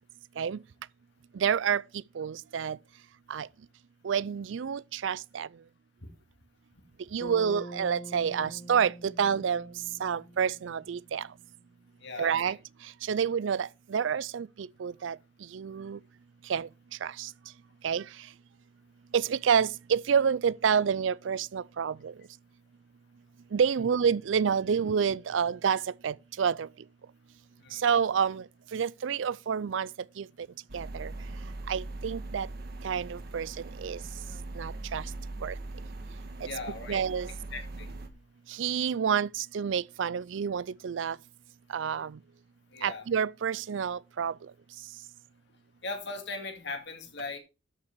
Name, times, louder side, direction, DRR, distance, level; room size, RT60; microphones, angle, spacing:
voice 1, 1.4-1.8 2.2-2.8 3.3-3.5 4.0-5.5 7.1-9.7 10.0-11.2 12.2-12.6 13.1-15.2 15.5-16.0 16.5-16.7 17.0-17.3 17.8-18.0 19.1-22.1 23.5-26.7 27.8-28.4 28.7-29.9 30.2-30.3 30.7-31.1 31.7-32.5 32.8-33.5 33.8-34.0 34.6-35.0 35.4-35.5 36.9-37.3 38.6-41.2 41.7-42.2 42.8-44.3, right 7 dB, 70° right, 0.4 m, -28 dB
Bass guitar, 7.2-11.3, right 1 dB, 25° left, 1.2 m, -46 dB
voice 2, 12.0-12.5 27.6-27.8 36.4-37.0 37.5-37.9 42.7-43.1 45.8-47.4, left 3 dB, 65° left, 2.3 m, -39 dB
sound 1, 30.7-38.1, right 2 dB, 55° right, 1.5 m, -40 dB
13.0 x 5.9 x 4.5 m
head